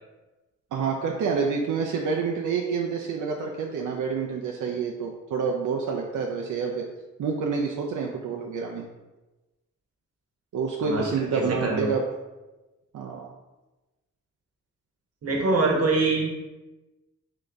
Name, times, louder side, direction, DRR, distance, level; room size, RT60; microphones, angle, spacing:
voice 1, 0.7-6.9 7.2-8.8 10.5-12.0 12.9-13.3, right 5 dB, 85° right, 0 dB, 0.5 m, -28 dB
voice 2, 10.8-11.9 15.2-16.3, right 3 dB, 50° right, -1 dB, 1.0 m, -24 dB
3.9 x 3.7 x 3.3 m, 1.1 s
wide cardioid pair, 125°, 30 cm